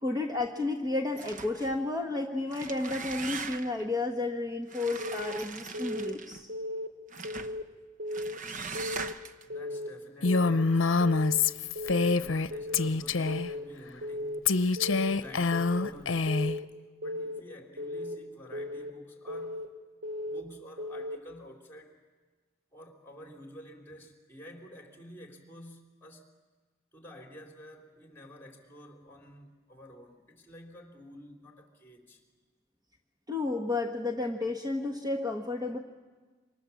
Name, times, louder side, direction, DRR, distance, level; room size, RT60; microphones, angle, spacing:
voice 1, 0.0-6.5 33.3-35.8, left 2 dB, 20° right, 1.4 m, -32 dB
sound 1, 1.1-1.8 2.4-3.9 4.7-6.4 7.1-7.6 8.1-9.4, right 5 dB, 40° right, 1.0 m, -40 dB
Keyboard (musical) / Alarm, 5.0-5.4 5.7-6.1 6.5-6.9 7.2-7.6 8.0-8.4 8.8-9.1 9.5-9.9 10.3-10.6 11.0-11.4 11.8-12.1 12.5-12.9 13.3-13.6 14.0-14.4 14.8-15.1 15.5-15.9 16.3-16.7 17.0-17.4 17.8-18.2 18.5-18.9 19.3-19.7 20.0-20.4 20.8-21.2, left 1 dB, 60° right, 2.8 m, -36 dB
voice 2, 9.5-11.0 11.8-14.5 14.9-16.5 17.0-19.7 20.2-22.0 22.7-26.3 26.9-32.2, equal, 10° left, 3.6 m, -50 dB
Female speech woman speaking, 10.2-12.5 12.7-13.5 14.5-16.6, left 4 dB, 85° left, 0.7 m, -26 dB
28.5 x 25.5 x 7.2 m
head